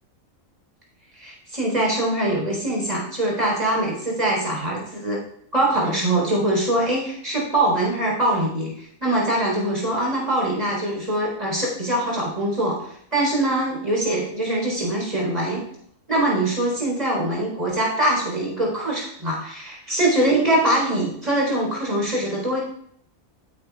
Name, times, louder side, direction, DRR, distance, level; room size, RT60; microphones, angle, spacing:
voice 1, 1.1-5.2 5.5-15.6 16.1-22.6, right 1 dB, 30° right, -3 dB, 4.3 m, -23 dB
15.0 x 9.3 x 2.4 m, 0.68 s
omnidirectional pair, 1.4 m